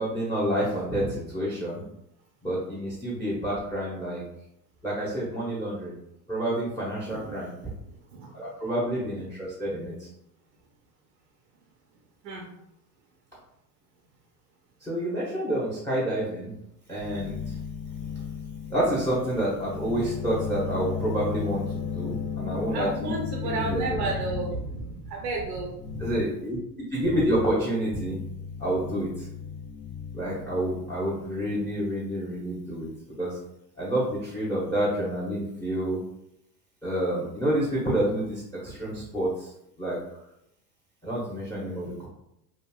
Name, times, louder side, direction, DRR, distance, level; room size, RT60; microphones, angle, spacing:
voice 1, 0.0-1.8 2.4-4.2 4.8-6.0 6.3-7.5 8.3-10.1 14.8-16.5 16.9-17.6 18.7-23.1 23.4-24.0 26.0-26.6 26.9-28.2 28.6-29.3 30.1-32.9 33.2-33.4 33.8-36.0 36.8-39.5 39.8-40.0 41.0-42.1, right 1 dB, 5° left, -6 dB, 0.7 m, -28 dB
voice 2, 7.1-7.5 8.1-8.4 12.2-12.5 22.7-26.0, right 3 dB, 80° right, -1 dB, 0.7 m, -32 dB
sound 1, 17.0-24.7 25.7-26.3 27.0-27.6 27.8-31.9, left 7 dB, 85° left, 0.7 m, -35 dB
2.9 x 2.5 x 2.2 m, 0.80 s
hypercardioid pair, 85°, 49 cm